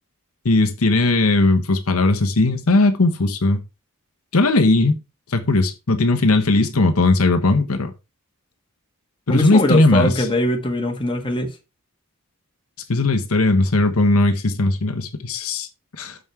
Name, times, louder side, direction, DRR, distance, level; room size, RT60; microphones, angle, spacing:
voice 1, 0.4-3.6 4.3-5.0 5.3-7.9 9.3-10.3 12.9-15.7 16.0-16.2, left 2 dB, 80° left, 1.1 m, -18 dB
voice 2, 9.3-11.5, left 1 dB, 25° left, 1.4 m, -21 dB
6.2 x 5.7 x 4.7 m
head